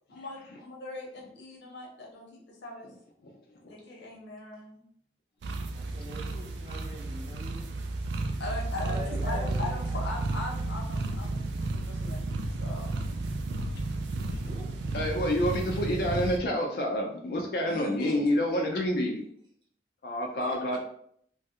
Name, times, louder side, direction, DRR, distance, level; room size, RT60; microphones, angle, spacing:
voice 1, 0.1-2.9 3.7-4.8 8.4-12.3 12.6-12.9 17.7-18.3 20.4-20.5, left 2 dB, 90° left, -1 dB, 0.9 m, -40 dB
sound 1, 5.4-16.4, right 2 dB, 85° right, 0.4 m, -32 dB
voice 2, 5.7-7.7 8.8-10.0 10.4-10.5 14.4-14.7, equal, 25° right, -2 dB, 0.7 m, -44 dB
voice 3, 14.9-19.2 20.0-20.8, equal, 60° left, 0 dB, 0.4 m, -28 dB
3.1 x 2.3 x 2.7 m, 0.67 s
head